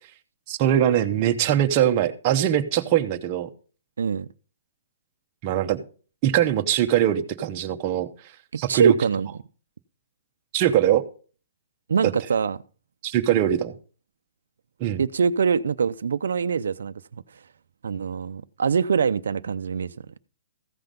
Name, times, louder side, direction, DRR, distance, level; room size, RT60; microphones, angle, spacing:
voice 1, 0.5-3.5 5.4-5.8 6.2-8.1 8.6-8.9 10.5-11.0 13.0-13.7 14.8-15.0, right 11 dB, 25° right, 0.9 m, -22 dB
voice 2, 4.0-4.3 8.5-9.3 11.9-12.6 15.0-16.9 17.8-19.9, right 6 dB, 80° right, 0.6 m, -23 dB
14.5 x 5.8 x 5.3 m
hypercardioid pair, 170°, 0 cm